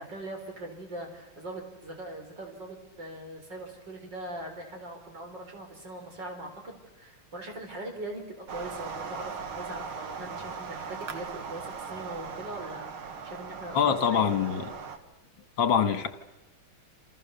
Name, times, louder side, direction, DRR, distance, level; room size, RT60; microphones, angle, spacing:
voice 1, 0.0-14.6, right 1 dB, 55° right, 3 dB, 5.4 m, -41 dB
sound 1, 8.5-15.0, right 5 dB, 75° right, 2.5 m, -39 dB
voice 2, 13.7-14.7 15.6-16.1, left 7 dB, 65° left, 9 dB, 2.3 m, -24 dB
28.5 x 28.0 x 6.9 m, 0.98 s
omnidirectional pair, 2.3 m